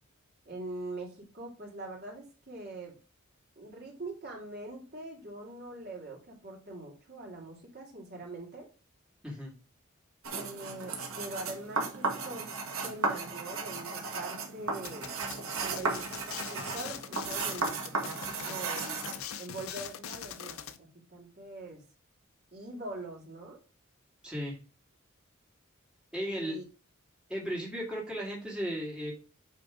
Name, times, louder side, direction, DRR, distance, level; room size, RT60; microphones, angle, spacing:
voice 1, 0.4-2.9 3.6-8.7 10.3-12.6 12.8-15.1 15.6-16.1 16.4-19.1 19.4-21.8 22.5-23.6 26.2-26.6, right 2 dB, 50° right, -2 dB, 2.6 m, -43 dB
sound 1, 10.2-19.2, right 3 dB, 75° right, 1.7 m, -35 dB
sound 2, 14.9-20.8, left 8 dB, 80° left, 0.6 m, -42 dB
voice 2, 24.2-24.6 26.1-26.6 27.3-29.1, equal, 5° right, -5 dB, 2.2 m, -35 dB
8.5 x 3.7 x 4.9 m, 0.34 s
head